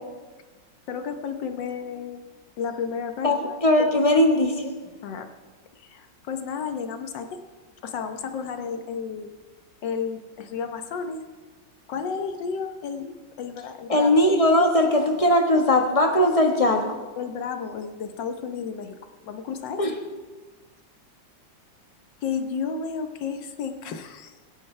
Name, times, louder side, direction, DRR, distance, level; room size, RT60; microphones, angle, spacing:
voice 1, 0.9-2.2 2.6-3.6 5.0-5.3 5.7-7.4 7.8-9.3 9.8-11.2 11.9-14.2 15.5-15.6 17.2-19.0 19.2-19.8 22.2-24.4, left 6 dB, 75° left, 7 dB, 1.6 m, -32 dB
voice 2, 3.2-4.7 13.9-17.0 19.8-19.9, left 1 dB, 20° left, 3 dB, 1.2 m, -19 dB
22.5 x 10.0 x 3.3 m, 1.3 s
omnidirectional pair, 2.0 m